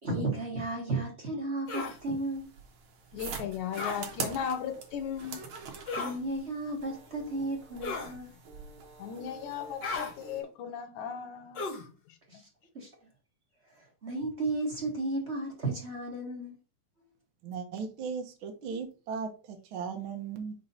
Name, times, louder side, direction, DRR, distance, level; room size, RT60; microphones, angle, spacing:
voice 1, 0.0-2.5 5.9-8.3 12.3-12.5 12.7-12.9 13.6-16.5, right 2 dB, 35° right, 1.1 m, -34 dB
sound 1, 1.7-2.0 3.8-4.0 5.9-6.2 7.8-8.2 9.8-10.1 11.5-11.9, left 4 dB, 50° left, 1.4 m, -34 dB
sound 2, 1.7-10.4, right 5 dB, 55° right, 1.5 m, -44 dB
voice 2, 3.1-5.4 9.0-11.7 12.1-12.2, left 8 dB, 75° left, 2.1 m, -36 dB
voice 3, 17.4-20.5, right 6 dB, 75° right, 1.1 m, -37 dB
5.4 x 3.7 x 5.5 m
omnidirectional pair, 3.7 m